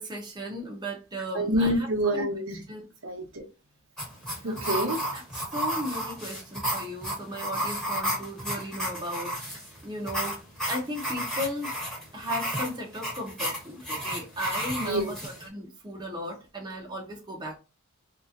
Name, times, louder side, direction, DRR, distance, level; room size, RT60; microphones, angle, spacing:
voice 1, 0.0-2.3 2.7-2.8 4.4-4.6 5.1-9.3 9.8-10.4 10.7-11.8 12.1-17.6, equal, 20° right, 0.8 m, -36 dB
voice 2, 1.3-2.6 3.0-3.4 4.4-5.0 14.8-15.1, equal, 70° right, 0.9 m, -27 dB
sound 1, 4.0-15.5, equal, ahead, 1.1 m, -33 dB
3.0 x 2.8 x 2.5 m
head